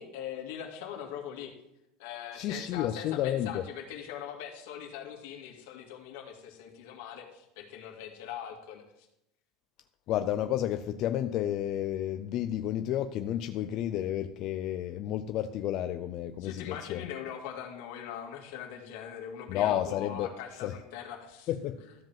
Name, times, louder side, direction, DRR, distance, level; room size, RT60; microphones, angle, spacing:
voice 1, 0.0-1.5 2.0-9.1 16.4-21.5, left 9 dB, 70° left, 2 dB, 2.2 m, -41 dB
voice 2, 2.3-3.6 10.1-17.0 19.5-20.3 20.6-20.7 21.5-21.8, left 11 dB, 40° left, 8 dB, 0.4 m, -31 dB
13.5 x 5.1 x 7.4 m, 0.85 s
cardioid pair, 180°, 0 cm